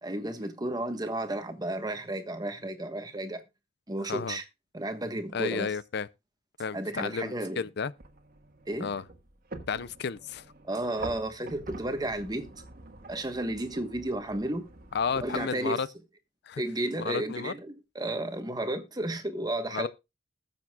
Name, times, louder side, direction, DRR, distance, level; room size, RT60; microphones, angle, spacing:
voice 1, 0.0-3.4 3.9-4.5 4.7-5.7 6.7-7.7 8.7-8.9 10.6-12.5 13.1-14.7 15.1-15.8 16.6-19.9, right 1 dB, 20° right, 1.3 m, -33 dB
voice 2, 5.3-6.1 6.6-7.9 8.8-9.0 9.7-10.4 14.9-15.9 16.5-16.6 17.0-17.5 19.7-19.9, left 5 dB, 60° left, 0.5 m, -32 dB
sound 1, 8.0-15.4, right 2 dB, 50° right, 1.5 m, -46 dB
20.5 x 7.1 x 2.3 m
head